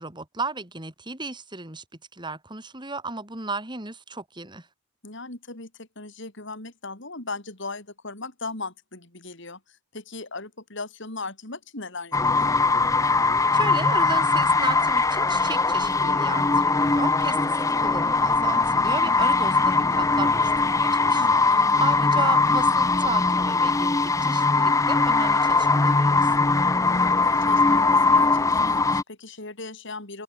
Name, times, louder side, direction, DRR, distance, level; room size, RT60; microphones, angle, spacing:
voice 1, 0.0-1.8 2.1-4.7 13.5-26.7, right 3 dB, 20° right, 4.7 m, -34 dB
voice 2, 5.0-12.6 21.0-21.9 26.8-30.2, left 3 dB, 60° left, 5.2 m, -38 dB
sound 1, 12.1-29.0, left 3 dB, 15° left, 0.7 m, -21 dB
open air
head